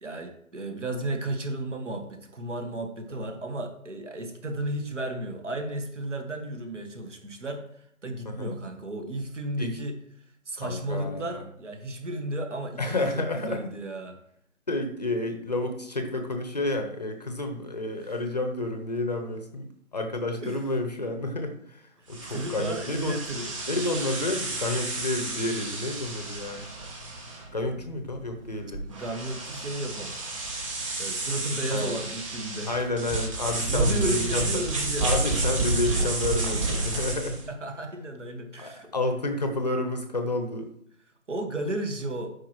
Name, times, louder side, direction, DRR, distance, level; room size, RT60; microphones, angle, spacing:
voice 1, 0.0-7.6 8.0-10.0 10.5-14.2 18.0-18.2 20.4-20.6 22.0-23.5 27.8-27.9 28.8-30.1 31.0-32.9 33.7-35.1 35.7-35.8 37.5-38.9 41.3-42.3, right 1 dB, 60° right, 5 dB, 1.7 m, -33 dB
voice 2, 8.2-8.6 9.6-9.8 10.6-11.4 12.8-13.6 14.7-19.6 19.9-23.2 23.7-26.6 27.5-28.8 31.7-32.0 32.7-34.6 35.0-37.4 38.6-40.7, left 2 dB, 30° left, 5 dB, 0.8 m, -30 dB
sound 1, 22.1-37.5, right 2 dB, 25° right, 1.7 m, -31 dB
13.0 x 5.0 x 3.1 m, 0.70 s
figure-of-eight pair, 160°, 41 cm